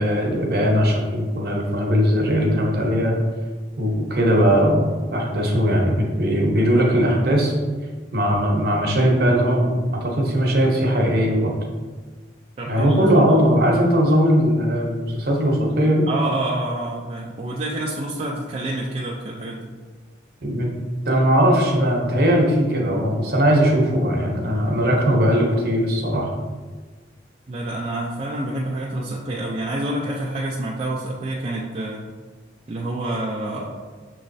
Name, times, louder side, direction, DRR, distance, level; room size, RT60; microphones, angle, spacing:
voice 1, 0.0-3.1 3.8-7.5 8.1-11.6 12.7-16.1 20.4-20.7 21.0-26.3, equal, 55° right, -1 dB, 0.8 m, -19 dB
voice 2, 12.6-13.0 16.1-19.7 27.5-32.1 32.7-33.8, right 1 dB, 35° right, -4 dB, 0.4 m, -27 dB
6.2 x 3.1 x 2.6 m, 1.4 s
head